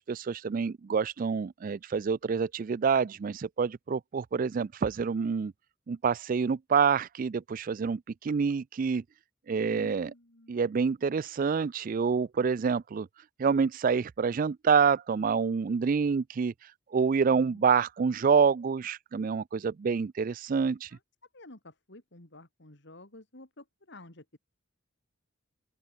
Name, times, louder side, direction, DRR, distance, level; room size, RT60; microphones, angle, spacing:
voice 1, 0.0-5.5 5.9-9.0 9.5-10.1 10.5-13.1 13.4-16.5 16.9-20.9, right 6 dB, 40° right, 0.3 m, -27 dB
voice 2, 9.7-10.7 17.3-17.6 20.9-21.0 21.3-24.4, left 2 dB, 55° left, 2.9 m, -52 dB
open air
head